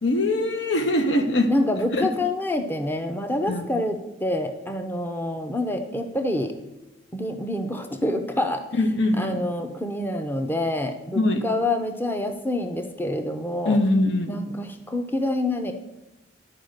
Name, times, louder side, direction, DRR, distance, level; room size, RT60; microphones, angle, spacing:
voice 1, 0.0-1.6 1.9-2.1 3.5-3.7 8.7-9.5 11.1-11.4 13.7-14.3, left 1 dB, 75° left, 7 dB, 1.0 m, -22 dB
voice 2, 1.5-6.6 7.1-8.6 9.2-13.8 14.3-15.7, left 1 dB, 10° left, 6 dB, 0.6 m, -27 dB
10.5 x 4.7 x 6.5 m, 1.0 s
head